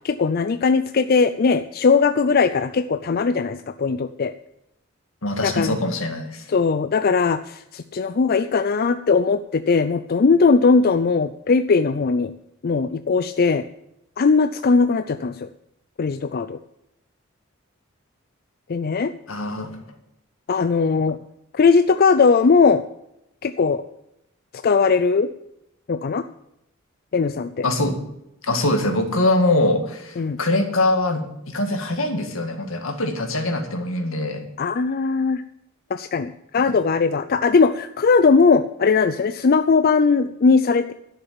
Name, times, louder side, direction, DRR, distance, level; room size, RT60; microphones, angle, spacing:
voice 1, 0.0-4.3 5.4-5.8 6.5-12.3 12.6-13.6 14.2-15.5 16.0-16.6 18.7-19.1 20.5-21.2 21.5-22.8 23.4-23.8 24.6-25.3 25.9-26.2 27.1-27.6 30.2-30.4 34.6-35.4 35.9-40.9, left 4 dB, 45° left, 11 dB, 0.4 m, -19 dB
voice 2, 5.2-6.5 19.3-19.8 27.6-28.0 28.4-34.5, left 2 dB, 80° left, 5 dB, 2.0 m, -23 dB
11.5 x 6.8 x 8.8 m, 0.82 s
head